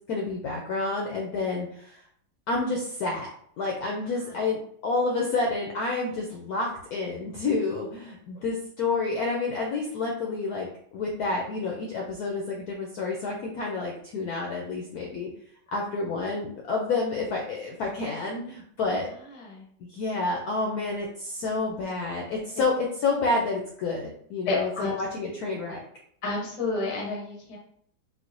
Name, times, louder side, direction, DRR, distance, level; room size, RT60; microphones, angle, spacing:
voice 1, 0.1-2.0 2.5-3.3 3.6-15.3 15.7-19.1 19.9-24.7 25.0-25.8, left 3 dB, 80° left, -1 dB, 0.8 m, -29 dB
voice 2, 19.3-19.6 24.5-24.9 25.2-25.4 26.2-27.6, left 3 dB, 60° left, -2 dB, 0.3 m, -30 dB
4.6 x 2.0 x 2.5 m, 0.65 s
omnidirectional pair, 2.1 m